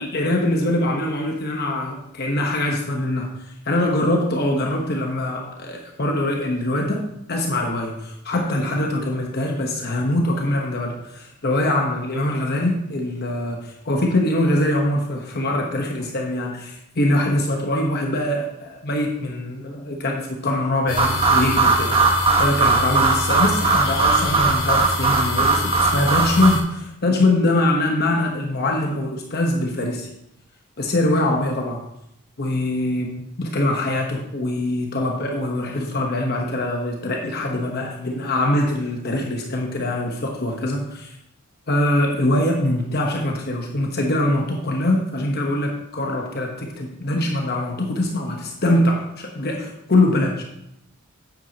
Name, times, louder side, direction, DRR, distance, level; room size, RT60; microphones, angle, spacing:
voice 1, 0.0-30.1 30.8-31.8 32.4-33.1 33.4-41.2 41.7-50.4, left 1 dB, 50° left, 0 dB, 1.0 m, -23 dB
sound 1, 20.9-26.6, left 2 dB, 85° left, 1.9 m, -28 dB
sound 2, 21.0-26.5, right 4 dB, 30° right, 1.1 m, -19 dB
9.0 x 8.2 x 2.8 m, 0.79 s
head